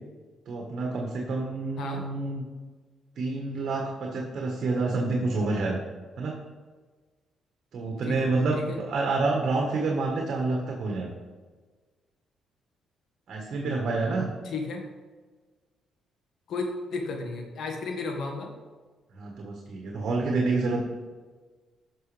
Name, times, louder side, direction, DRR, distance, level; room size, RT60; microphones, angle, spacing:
voice 1, 0.5-2.4 3.2-5.8 6.2-6.4 7.7-11.1 13.3-14.3 19.2-20.9, right 3 dB, 60° right, 0 dB, 1.5 m, -28 dB
voice 2, 1.8-2.1 8.0-8.3 8.5-8.8 14.4-14.9 16.5-18.5, left 3 dB, 70° left, 2 dB, 1.7 m, -33 dB
12.0 x 6.3 x 3.4 m, 1.4 s
cardioid pair, 90°, 0 cm